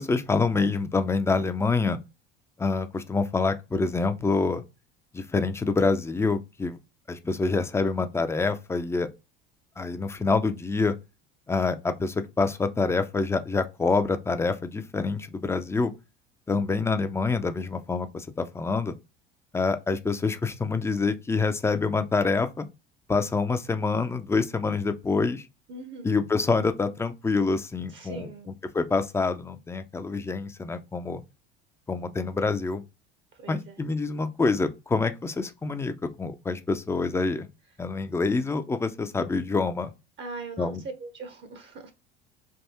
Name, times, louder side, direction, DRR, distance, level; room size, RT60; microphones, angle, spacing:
voice 1, 0.0-2.0 2.6-4.6 5.1-6.8 7.1-9.1 9.8-10.9 11.5-15.9 16.5-18.9 19.5-22.7 23.1-25.4 26.0-28.3 28.7-31.2 31.9-32.8 33.5-37.5 37.8-39.9 40.6-40.8, left 4 dB, 10° left, 0.4 m, -26 dB
voice 2, 16.5-16.9 25.7-26.1 27.9-28.5 33.3-33.8 40.2-41.9, right 3 dB, 40° right, 0.7 m, -41 dB
3.5 x 2.6 x 2.7 m
hypercardioid pair, 75°, 30 cm